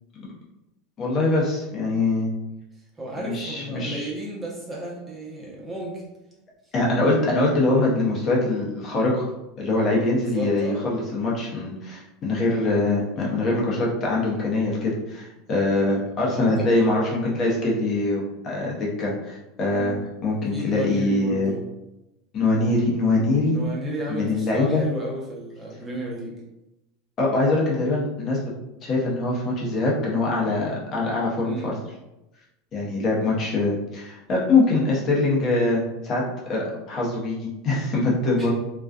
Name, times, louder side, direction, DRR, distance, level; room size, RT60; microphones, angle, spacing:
voice 1, 1.0-2.3 3.2-4.1 6.7-9.2 9.6-21.5 22.3-23.6 24.1-24.8 27.2-28.4 28.8-31.7 32.7-36.2 36.5-38.5, left 2 dB, 40° left, -4 dB, 0.8 m, -23 dB
voice 2, 3.0-6.0 10.1-10.9 15.9-16.0 16.3-16.7 19.7-20.0 20.5-21.6 23.4-26.4 31.4-31.7 38.4-38.5, equal, 20° right, -4 dB, 0.8 m, -33 dB
2.4 x 2.2 x 2.3 m, 0.93 s
supercardioid pair, 110°, 0 cm